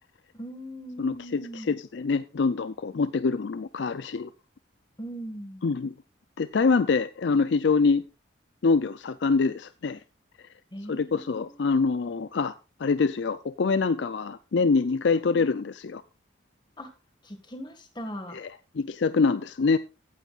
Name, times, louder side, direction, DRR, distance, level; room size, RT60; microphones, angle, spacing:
voice 1, 0.3-1.8 5.0-5.7 10.7-11.6 15.1-15.5 16.8-16.9 17.2-18.4, equal, 25° left, 1.8 m, -40 dB
voice 2, 1.0-4.3 5.6-5.9 6.4-8.0 8.6-10.0 10.9-12.5 12.8-16.0 18.3-18.5 18.8-19.8, left 4 dB, 65° left, 0.4 m, -25 dB
15.5 x 9.2 x 2.4 m
head